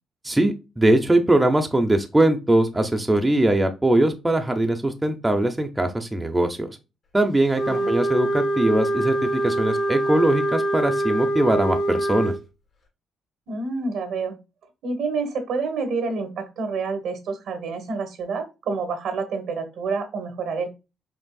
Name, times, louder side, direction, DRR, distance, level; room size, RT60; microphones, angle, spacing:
voice 1, 0.2-6.7 7.1-12.3, right 1 dB, 10° right, 0.7 m, -21 dB
Wind instrument woodwind instrument, 7.5-12.4, right 1 dB, 50° left, 2.0 m, -24 dB
voice 2, 7.7-8.0 13.5-14.4 14.8-20.7, right 4 dB, 75° right, 1.2 m, -28 dB
5.3 x 3.0 x 2.3 m
cardioid pair, 90°, 0 cm